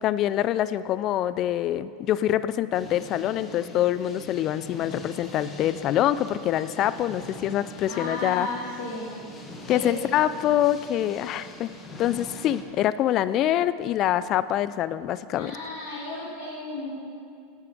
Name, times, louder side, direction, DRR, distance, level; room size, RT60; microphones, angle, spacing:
voice 1, 0.0-8.5 9.7-11.7 12.0-15.6, left 12 dB, 45° left, 16 dB, 0.3 m, -25 dB
sound 1, 2.7-12.6, left 1 dB, 25° left, 1.5 m, -43 dB
voice 2, 7.8-9.1 9.7-10.2 15.3-17.0, left 2 dB, 70° left, -7 dB, 2.5 m, -34 dB
9.3 x 8.9 x 5.2 m, 2.4 s
hypercardioid pair, 95°, 0 cm